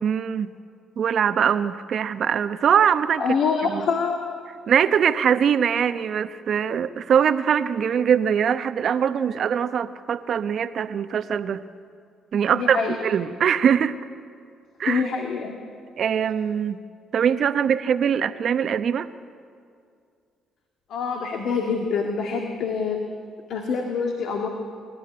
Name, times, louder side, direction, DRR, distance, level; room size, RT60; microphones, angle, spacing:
voice 1, 0.0-0.5 1.0-3.2 3.7-3.9 4.7-11.6 12.3-13.9 14.8-15.0 16.0-16.8 17.1-19.1, right 8 dB, 60° right, 12 dB, 0.8 m, -22 dB
voice 2, 3.2-4.2 12.5-13.0 14.9-15.6 20.9-23.0 23.5-24.5, left 5 dB, 65° left, 2 dB, 1.8 m, -25 dB
26.0 x 12.5 x 9.5 m, 2.3 s
hypercardioid pair, 50°, 0 cm